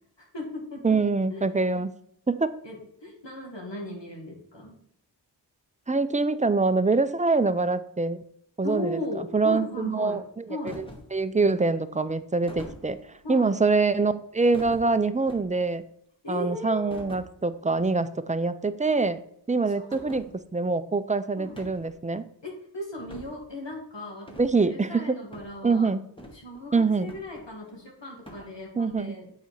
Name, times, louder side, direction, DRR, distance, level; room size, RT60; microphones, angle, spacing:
voice 1, 0.2-1.0 1.3-1.5 2.6-4.8 8.6-10.2 10.5-10.8 13.2-13.5 16.2-17.0 19.7-20.3 21.4-21.6 22.4-25.9 26.3-29.3, left 1 dB, 70° left, 0 dB, 1.8 m, -37 dB
voice 2, 0.8-1.9 2.3-2.5 5.9-8.2 8.6-9.0 9.3-10.4 10.8-10.9 11.1-13.0 13.3-15.8 16.3-19.2 19.5-20.2 20.5-22.3 24.4-25.2 25.6-26.0 26.7-27.1 28.8-29.2, right 3 dB, 20° right, 12 dB, 0.4 m, -24 dB
sound 1, 10.7-11.2 12.5-13.2 14.5-15.7 16.9-17.3 17.7-18.0 18.2-18.3 18.8-18.9 19.9-20.3 21.4-22.0 23.0-23.4 24.3-24.6 25.3-25.5 26.2-26.6 27.1-27.8 28.3-28.5, equal, 10° left, 1.4 m, -44 dB
8.0 x 4.2 x 4.7 m, 0.69 s
wide cardioid pair, 40°, 44 cm